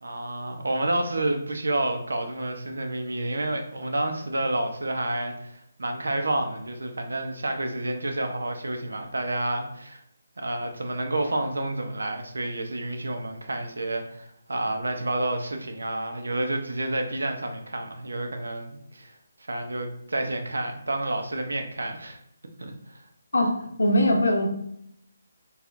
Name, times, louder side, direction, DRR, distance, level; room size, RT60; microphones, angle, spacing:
voice 1, 0.0-10.0 10.4-19.1 19.5-22.2 22.6-23.0, right 1 dB, 85° right, 5 dB, 0.7 m, -29 dB
voice 2, 23.8-24.5, left 1 dB, 80° left, 1 dB, 0.9 m, -20 dB
4.2 x 2.4 x 2.5 m, 0.74 s
hypercardioid pair, 160°, 0 cm